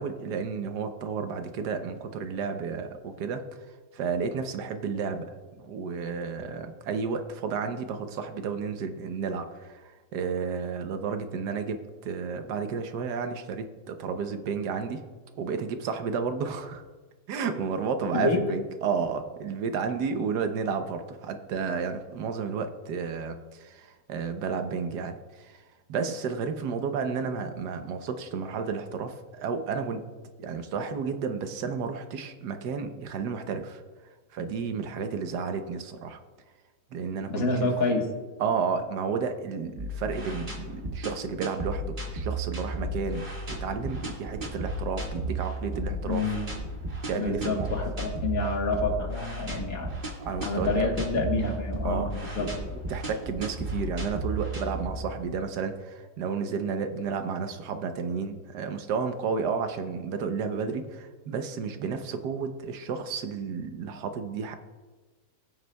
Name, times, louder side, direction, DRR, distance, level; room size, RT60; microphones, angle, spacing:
voice 1, 0.0-15.0 15.4-16.8 17.3-25.6 25.9-30.0 30.4-33.8 34.3-36.2 36.9-37.7 38.4-46.3 47.1-47.7 50.3-50.7 51.8-52.6 52.9-64.5, right 5 dB, 80° right, 8 dB, 1.3 m, -32 dB
voice 2, 37.3-38.1 46.1-46.5 47.2-49.9 50.4-52.5, left 3 dB, 60° left, 1 dB, 1.7 m, -28 dB
sound 1, 39.8-55.3, right 1 dB, 30° right, 1.7 m, -34 dB
18.0 x 7.9 x 2.2 m, 1.3 s
omnidirectional pair, 1.8 m